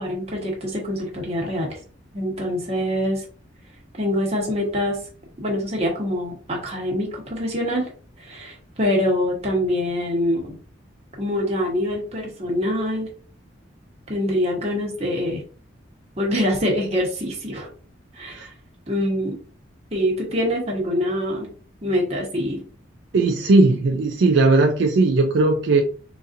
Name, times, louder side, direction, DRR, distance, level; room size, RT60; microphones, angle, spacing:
voice 1, 0.0-1.7 2.1-3.3 4.0-5.0 5.4-7.9 8.2-10.6 11.2-13.1 14.1-15.4 16.2-17.7 18.1-18.5 18.9-19.3 19.9-21.5 21.8-22.6, left 1 dB, 30° right, -1 dB, 1.1 m, -24 dB
voice 2, 23.1-25.8, right 3 dB, 65° right, 3 dB, 0.4 m, -17 dB
4.0 x 2.6 x 2.5 m, 0.40 s
head